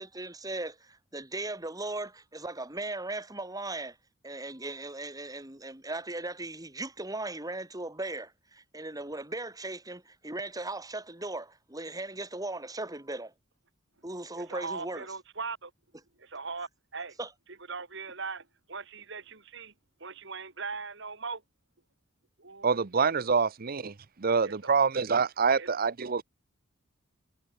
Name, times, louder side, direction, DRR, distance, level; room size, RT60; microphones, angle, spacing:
voice 1, 0.0-4.0 4.2-13.3 14.0-15.1 17.2-17.3, right 2 dB, 20° right, 4.3 m, -38 dB
voice 2, 14.4-15.7 16.2-17.2 17.7-19.7 20.0-21.4 22.4-23.1 24.4-24.5 25.6-25.7, right 4 dB, 65° right, 3.8 m, -40 dB
voice 3, 22.6-23.9 24.2-26.2, right 5 dB, 50° right, 0.8 m, -26 dB
head